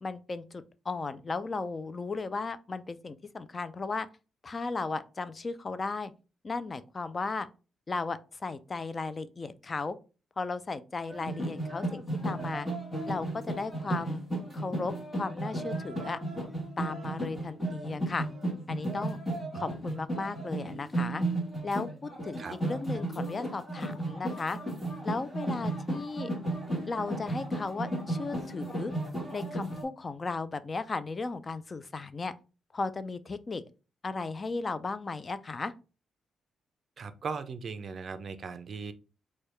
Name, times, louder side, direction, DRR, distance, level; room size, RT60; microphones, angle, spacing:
voice 1, 0.0-4.1 4.4-6.1 6.4-7.5 7.9-10.0 10.4-12.7 13.1-14.2 14.5-16.2 16.8-18.3 18.7-19.2 19.5-21.2 21.6-24.6 25.0-26.3 26.9-28.9 29.3-32.3 32.7-33.6 34.0-35.7, left 3 dB, 30° left, 14 dB, 0.3 m, -35 dB
sound 1, 11.1-29.8, right 1 dB, 5° left, 1.4 m, -34 dB
voice 2, 37.0-38.9, right 5 dB, 45° right, 11 dB, 0.5 m, -38 dB
4.5 x 2.2 x 3.2 m, 0.33 s
cardioid pair, 130°, 0 cm